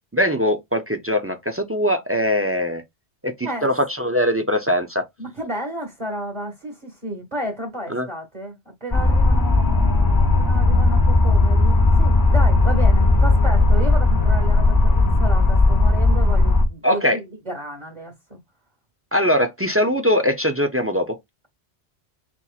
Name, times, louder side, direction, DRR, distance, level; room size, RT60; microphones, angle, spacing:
voice 1, 0.1-2.8 3.2-3.3 3.6-5.0 7.9-8.1 16.8-17.2 19.1-21.2, equal, 25° right, 0.3 m, -21 dB
voice 2, 5.2-18.4, right 1 dB, 40° right, 1.7 m, -32 dB
sound 1, 8.9-16.6, left 2 dB, 25° left, 0.7 m, -16 dB
4.4 x 4.1 x 2.4 m
omnidirectional pair, 1.1 m